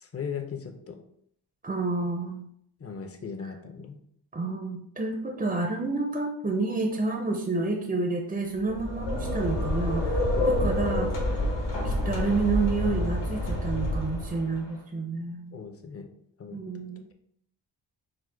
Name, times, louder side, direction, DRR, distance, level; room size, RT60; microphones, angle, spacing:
voice 1, 0.0-1.0 2.8-4.0 10.2-10.9 11.3-11.5 14.5-14.6 15.5-16.1 16.4-16.6, left 6 dB, 35° left, 7 dB, 0.5 m, -38 dB
voice 2, 1.6-2.5 4.3-11.1 11.8-15.5 16.5-17.1, right 3 dB, 20° right, 3 dB, 0.4 m, -29 dB
sound 1, 8.6-14.6, left 1 dB, 75° left, 1.4 m, -28 dB
4.8 x 2.1 x 4.4 m, 0.68 s
wide cardioid pair, 145°, 45 cm